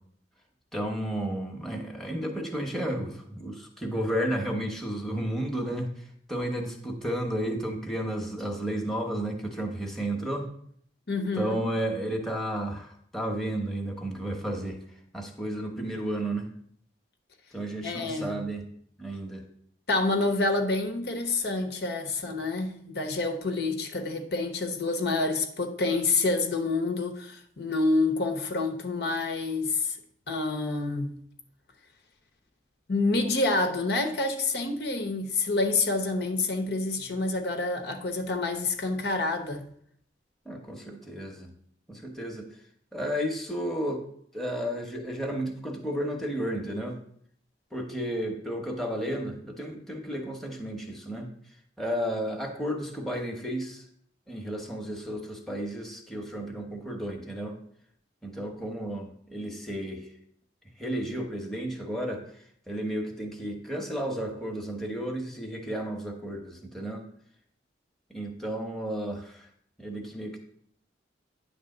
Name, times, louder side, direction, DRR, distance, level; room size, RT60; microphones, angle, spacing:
voice 1, 0.7-5.9 6.3-10.5 11.3-14.8 15.1-16.5 17.5-18.6 19.0-19.4 40.4-41.5 41.9-42.5 42.9-44.0 44.3-47.0 47.7-51.3 51.8-53.8 54.3-57.6 58.2-60.1 60.8-62.2 62.7-67.0 68.1-69.5 69.8-70.4, right 1 dB, ahead, 1.0 m, -32 dB
voice 2, 11.1-11.7 17.8-18.4 19.9-30.0 30.3-31.1 32.9-39.7, left 3 dB, 65° left, 1.0 m, -28 dB
9.6 x 3.4 x 6.5 m
head